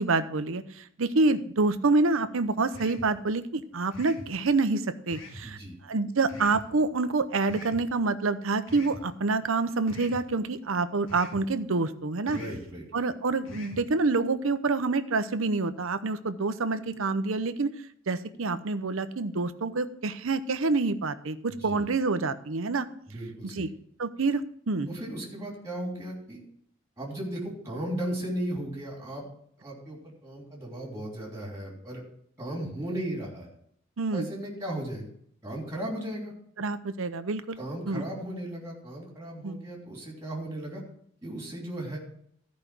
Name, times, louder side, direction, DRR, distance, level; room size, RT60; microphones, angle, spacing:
voice 1, 0.0-5.6 5.8-12.4 12.9-17.7 18.1-22.9 23.5-23.7 24.0-24.9 34.0-34.3 36.6-37.6 37.9-38.1 39.4-39.6, right 3 dB, 70° right, 11 dB, 0.7 m, -27 dB
sound 1, 2.7-3.1 3.9-4.3 5.1-5.5 6.3-6.7 7.5-7.8 8.7-9.0 9.9-10.2 11.1-11.4 12.3-12.6 13.5-13.8, left 1 dB, 65° left, 2.1 m, -43 dB
voice 2, 5.4-5.8 12.3-13.0 21.5-21.8 23.1-23.7 24.9-26.4 27.0-29.2 29.6-32.0 32.4-33.5 34.1-35.1 35.4-36.3 37.6-40.8 41.2-42.0, right 1 dB, 15° right, -2 dB, 3.0 m, -36 dB
13.5 x 5.2 x 6.0 m, 0.66 s
head